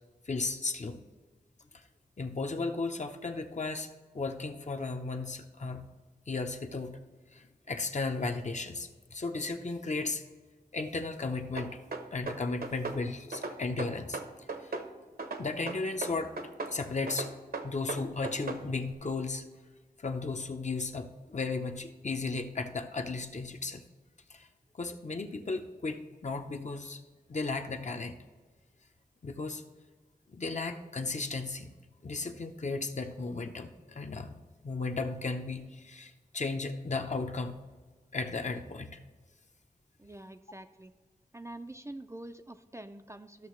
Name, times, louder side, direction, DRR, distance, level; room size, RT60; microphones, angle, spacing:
voice 1, 0.3-1.0 1.7-1.8 2.2-3.9 4.1-5.9 6.3-7.0 7.3-10.2 10.7-11.8 12.1-14.2 14.6-14.7 15.4-16.3 16.7-17.3 17.6-19.4 20.0-23.8 24.3-24.5 24.7-27.0 27.3-28.2 29.2-29.6 30.3-31.7 32.0-37.6 38.1-39.0, left 3 dB, 45° left, 6 dB, 0.7 m, -35 dB
sound 1, 11.6-13.0 13.3-14.9 15.2-16.8 17.1-18.6, right 3 dB, 70° right, 0.9 m, -37 dB
voice 2, 40.0-40.9 41.3-43.5, right 1 dB, 20° right, 8 dB, 0.4 m, -46 dB
13.0 x 6.5 x 3.1 m, 1.4 s
wide cardioid pair, 80°, 16 cm